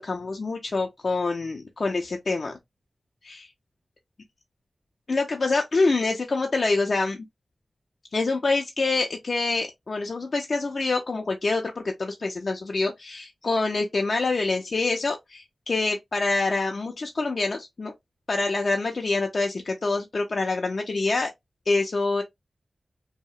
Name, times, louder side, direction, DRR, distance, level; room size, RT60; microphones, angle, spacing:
voice 1, 0.0-2.5 3.2-3.5 5.1-7.3 8.1-17.9 18.3-21.3 21.7-22.2, left 3 dB, 60° left, 0.4 m, -26 dB
2.8 x 2.0 x 2.2 m
cardioid pair, 45°, 0 cm